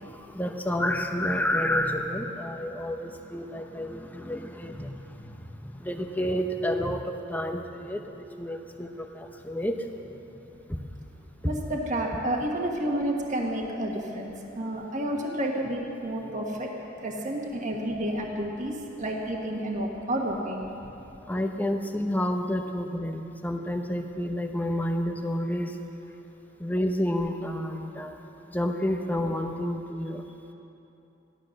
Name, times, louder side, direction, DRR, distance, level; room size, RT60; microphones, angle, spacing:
voice 1, 0.0-9.9 10.7-10.8 11.4-11.5 16.2-16.3 21.3-25.7 26.6-28.2 28.5-30.2, left 1 dB, 10° left, 4 dB, 0.9 m, -30 dB
voice 2, 11.4-16.7 17.0-20.7, right 1 dB, 40° right, -1 dB, 1.5 m, -30 dB
16.0 x 12.0 x 6.5 m, 2.9 s
head